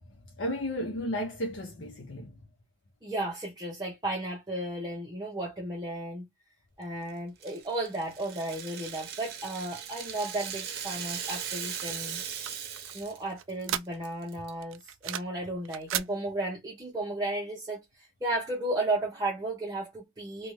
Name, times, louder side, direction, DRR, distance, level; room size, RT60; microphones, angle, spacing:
voice 1, 0.1-2.4, equal, 65° left, 0.7 m, -34 dB
voice 2, 3.0-6.2 6.8-12.2 12.9-20.5, right 1 dB, 20° right, 0.7 m, -34 dB
Rattle (instrument), 7.4-13.2 13.5-13.6 14.0-14.5, right 8 dB, 50° right, 0.7 m, -38 dB
sound 1, 11.8-14.3 14.6-15.4 15.7-16.1, right 11 dB, 75° right, 0.3 m, -36 dB
2.6 x 2.3 x 3.0 m
head